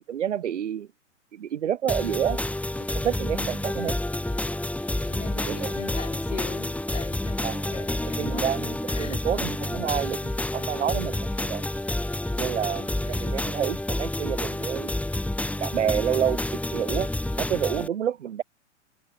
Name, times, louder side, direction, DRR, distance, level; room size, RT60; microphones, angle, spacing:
voice 1, 0.1-0.9 1.3-2.4 2.9-4.0 5.4-5.7 7.4-7.9 8.2-11.6 12.4-14.9 15.6-16.4 16.7-17.1 17.4-18.4, right 9 dB, 70° right, 6.9 m, -29 dB
sound 1, 1.9-17.9, left 1 dB, 5° left, 5.3 m, -29 dB
voice 2, 3.3-3.7 5.0-8.5 8.9-9.2 12.4-13.3, left 6 dB, 80° left, 6.5 m, -41 dB
open air
hypercardioid pair, 110°, 37 cm